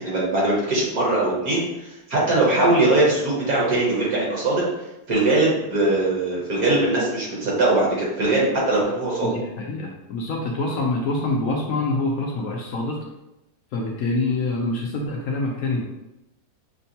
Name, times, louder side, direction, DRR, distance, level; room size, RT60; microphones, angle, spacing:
voice 1, 0.0-4.6 5.1-9.3, right 2 dB, 55° right, -5 dB, 1.4 m, -21 dB
voice 2, 9.2-13.0 13.7-15.8, left 2 dB, 70° left, -1 dB, 0.8 m, -25 dB
6.1 x 2.2 x 2.7 m, 0.94 s
omnidirectional pair, 2.1 m